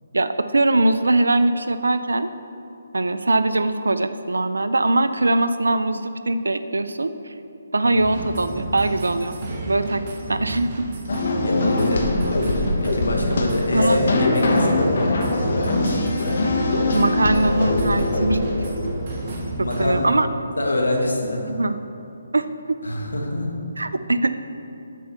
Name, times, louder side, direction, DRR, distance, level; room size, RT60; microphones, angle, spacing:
voice 1, 0.1-2.3 2.9-7.3 7.7-9.3 9.7-10.0 10.3-10.9 13.7-14.0 16.9-18.7 19.8-20.3 21.5-21.7 22.3-22.8 23.8-24.3, right 2 dB, 85° right, 11 dB, 0.4 m, -21 dB
sound 1, 8.0-20.1, right 2 dB, 40° right, 1.4 m, -32 dB
sound 2, 11.1-19.4, left 2 dB, 60° left, 1.2 m, -22 dB
voice 2, 11.4-14.9 19.2-20.2 20.6-21.6 22.8-23.5, left 1 dB, 90° left, 0 dB, 1.5 m, -26 dB
7.6 x 4.6 x 6.7 m, 2.7 s
figure-of-eight pair, 150°, 0 cm